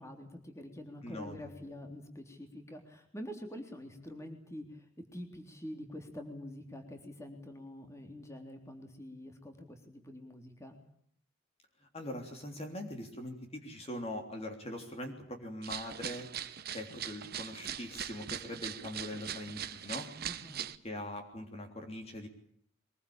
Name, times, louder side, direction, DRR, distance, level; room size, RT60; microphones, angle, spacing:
voice 1, 0.0-10.8 20.2-20.7, left 1 dB, 15° left, 4 dB, 3.5 m, -46 dB
voice 2, 1.0-1.5 11.9-16.3 16.7-20.1 20.8-22.3, left 1 dB, 30° left, 4 dB, 3.4 m, -42 dB
sound 1, 15.6-20.8, right 9 dB, 50° right, 1.1 m, -41 dB
24.0 x 21.5 x 8.7 m, 0.64 s
head